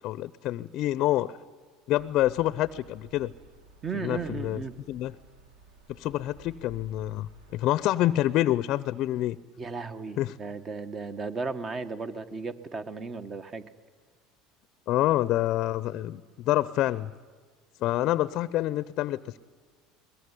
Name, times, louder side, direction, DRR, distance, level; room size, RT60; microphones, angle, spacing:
voice 1, 0.0-1.3 1.9-3.3 4.0-4.6 4.9-5.1 5.9-9.4 10.2-10.3 14.9-17.1 17.8-19.4, left 14 dB, 60° left, 17 dB, 0.6 m, -27 dB
sound 1, 2.0-7.7, right 1 dB, 85° right, 3.1 m, -53 dB
voice 2, 3.8-4.8 9.6-13.6, right 4 dB, 35° right, 10 dB, 1.5 m, -35 dB
22.0 x 21.0 x 9.9 m, 1.5 s
hypercardioid pair, 90°, 0 cm